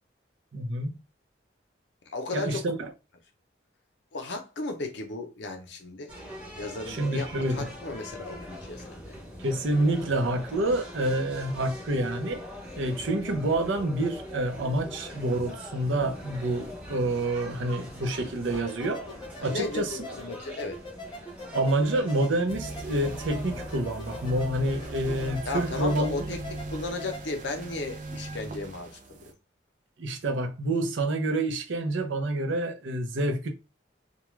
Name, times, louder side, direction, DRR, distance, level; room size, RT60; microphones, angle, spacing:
voice 1, 0.5-0.9 2.3-2.9 6.9-7.7 9.4-12.4 12.8-19.0 19.4-20.0 21.5-26.1 30.0-33.5, right 1 dB, 85° right, 0.6 m, -28 dB
voice 2, 2.1-2.6 4.1-6.1 6.6-9.1 19.4-20.8 25.4-29.3, left 3 dB, 70° left, 0.6 m, -35 dB
sound 1, 6.1-25.4, left 1 dB, 5° right, 0.9 m, -42 dB
sound 2, 18.5-27.3, left 1 dB, 25° left, 0.6 m, -43 dB
sound 3, 22.5-29.3, right 2 dB, 40° right, 0.4 m, -39 dB
2.3 x 2.2 x 3.1 m
head